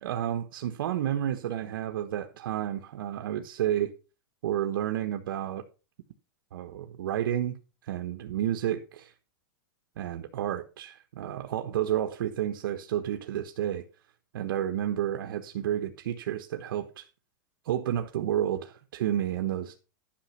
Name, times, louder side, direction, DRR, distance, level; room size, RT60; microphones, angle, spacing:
voice 1, 0.0-3.9 4.4-5.6 6.5-7.6 7.8-9.1 10.0-13.8 14.3-17.1 17.6-19.8, right 11 dB, 75° right, 1.2 m, -31 dB
11.5 x 6.1 x 5.7 m
supercardioid pair, 170°, 12 cm